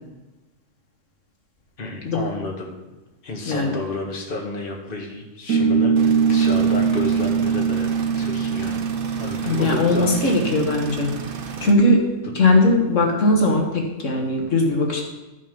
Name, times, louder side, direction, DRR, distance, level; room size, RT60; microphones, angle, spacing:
voice 1, 1.8-2.7 3.2-7.9 8.2-8.8 9.2-10.4 12.2-12.4, left 3 dB, 45° left, 0 dB, 1.7 m, -31 dB
voice 2, 3.5-3.8 9.5-11.1 11.6-12.0 12.4-15.0, left 2 dB, 75° left, 1 dB, 1.9 m, -19 dB
sound 1, 5.5-12.4, right 6 dB, 80° right, 1.4 m, -23 dB
sound 2, 6.0-11.7, right 6 dB, 50° right, 0.9 m, -34 dB
12.5 x 6.5 x 5.3 m, 1.1 s
omnidirectional pair, 1.3 m